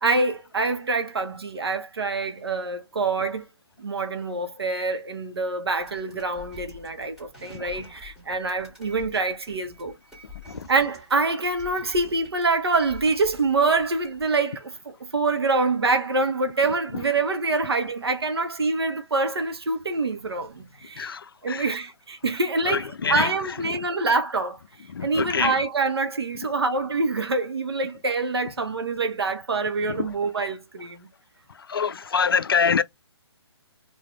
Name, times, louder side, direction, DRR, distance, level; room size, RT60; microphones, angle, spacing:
voice 1, 0.0-3.4 3.8-9.9 10.7-21.1 21.4-24.6 25.0-31.1, right 3 dB, 60° right, 1.2 m, -25 dB
sound 1, 5.8-14.2, left 3 dB, 5° right, 1.9 m, -47 dB
voice 2, 21.0-21.7 22.7-23.3 23.7-23.8 24.9-25.6 29.8-30.1 31.7-32.8, left 6 dB, 55° left, 0.5 m, -25 dB
4.9 x 2.7 x 3.4 m
figure-of-eight pair, 135°, 14 cm